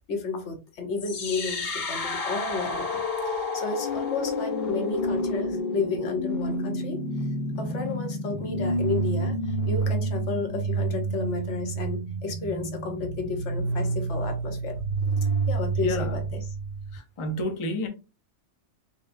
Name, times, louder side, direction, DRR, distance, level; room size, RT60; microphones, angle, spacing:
voice 1, 0.1-7.0 7.6-14.8 15.5-16.4, left 4 dB, 80° left, 1.2 m, -32 dB
sound 1, 1.0-17.0, right 1 dB, 60° left, 1.0 m, -29 dB
voice 2, 15.8-16.2 16.9-17.9, left 1 dB, 35° left, 0.5 m, -30 dB
4.2 x 2.3 x 2.5 m
omnidirectional pair, 1.2 m